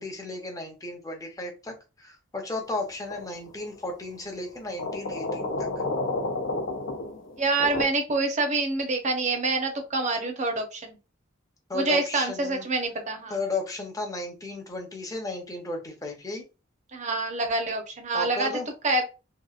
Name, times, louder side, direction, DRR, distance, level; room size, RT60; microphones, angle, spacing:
voice 1, 0.0-5.7 11.7-12.7 13.3-16.4 18.1-18.7, left 2 dB, 15° left, 2 dB, 0.7 m, -34 dB
sound 1, 3.1-3.5 4.8-7.8, left 2 dB, 75° left, 0.7 m, -30 dB
voice 2, 7.4-11.0 11.7-13.4 16.9-18.5 18.8-19.1, right 3 dB, 40° right, 4 dB, 0.7 m, -26 dB
2.9 x 2.7 x 2.3 m, 0.30 s
head